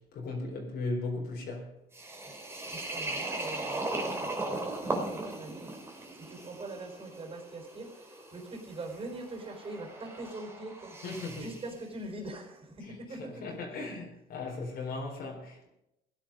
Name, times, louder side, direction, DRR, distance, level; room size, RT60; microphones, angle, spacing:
voice 1, 0.1-1.7 11.0-11.4 13.2-15.7, left 3 dB, 70° left, 4.0 m, -37 dB
sound 1, 1.9-11.7, right 2 dB, 15° right, 3.1 m, -38 dB
voice 2, 2.7-11.0 11.3-14.0 14.6-14.7, right 2 dB, 35° right, 4.4 m, -43 dB
17.0 x 10.5 x 5.2 m
cardioid pair, 110°, 17 cm